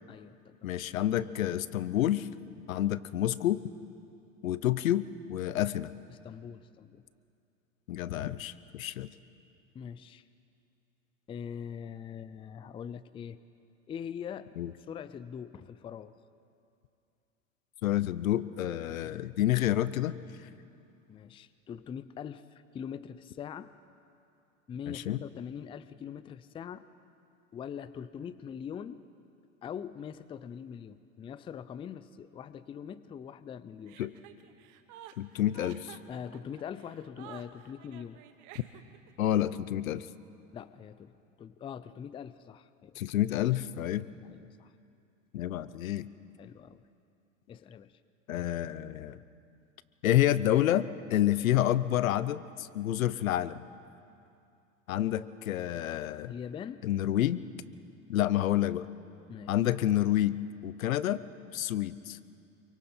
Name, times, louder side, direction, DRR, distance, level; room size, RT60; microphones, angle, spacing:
voice 1, 0.1-0.7 6.1-7.1 9.7-10.2 11.3-13.4 13.9-14.5 14.9-16.2 21.1-23.7 24.7-26.9 27.5-29.0 29.6-34.0 36.1-38.2 40.5-41.1 41.4-43.0 44.2-44.7 46.4-46.9 47.5-48.0 55.0-55.8 56.3-56.8 59.3-59.6, left 8 dB, 15° left, 15 dB, 0.4 m, -43 dB
voice 2, 0.6-2.3 2.7-3.6 4.4-5.9 7.9-9.1 14.6-14.7 17.8-20.1 24.9-25.2 34.0-34.1 35.2-36.0 39.2-40.1 43.0-44.1 45.3-46.1 48.3-49.2 50.0-53.6 54.9-56.3 56.8-57.4 58.1-58.9 59.5-61.2 61.5-62.2, left 12 dB, 90° left, 17 dB, 0.8 m, -29 dB
Chuckle chortle, 33.9-39.1, right 11 dB, 50° right, 1.4 m, -51 dB
27.5 x 23.5 x 4.4 m, 2.6 s
hypercardioid pair, 110°, 40 cm